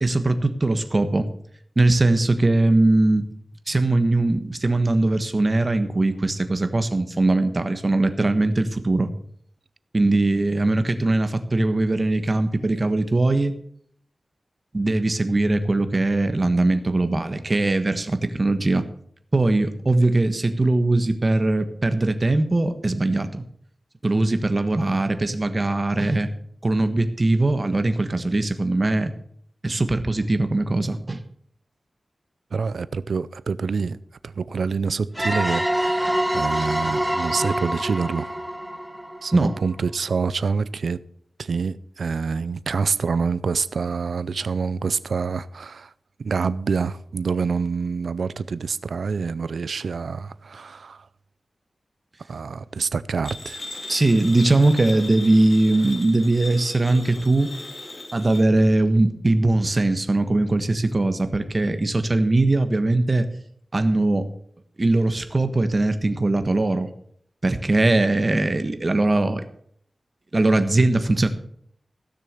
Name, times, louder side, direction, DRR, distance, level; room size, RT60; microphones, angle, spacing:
voice 1, 0.0-1.3 1.8-3.3 3.7-9.1 9.9-13.5 14.7-18.9 19.3-23.4 24.0-26.3 26.6-29.1 29.6-31.2 39.3-39.5 53.9-57.5 58.1-63.2 63.7-64.2 64.8-66.9 67.4-69.4 70.3-71.3, right 2 dB, 35° right, 1.4 m, -20 dB
voice 2, 32.5-34.0 34.2-38.4 39.2-41.0 41.4-45.9 46.2-51.1 52.3-53.6, right 5 dB, 90° right, 0.5 m, -26 dB
sound 1, 35.1-39.7, right 1 dB, 5° right, 1.4 m, -26 dB
sound 2, 53.2-58.4, left 2 dB, 45° left, 3.0 m, -37 dB
15.5 x 6.8 x 6.7 m
wide cardioid pair, 105°, 0 cm